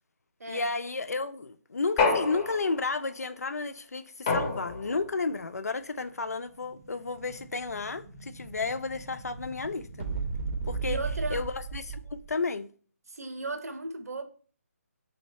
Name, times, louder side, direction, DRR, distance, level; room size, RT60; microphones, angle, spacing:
voice 1, 0.5-10.1 10.7-11.0 11.3-12.7, left 4 dB, 80° left, 0.4 m, -32 dB
sound 1, 2.0-3.0 4.3-5.1, left 4 dB, 20° left, 0.5 m, -28 dB
Explosion, 6.3-12.4, right 4 dB, 35° right, 0.6 m, -37 dB
voice 2, 10.8-11.5 13.1-14.2, right 3 dB, 75° right, 0.7 m, -35 dB
3.2 x 2.7 x 4.0 m
figure-of-eight pair, 155°, 8 cm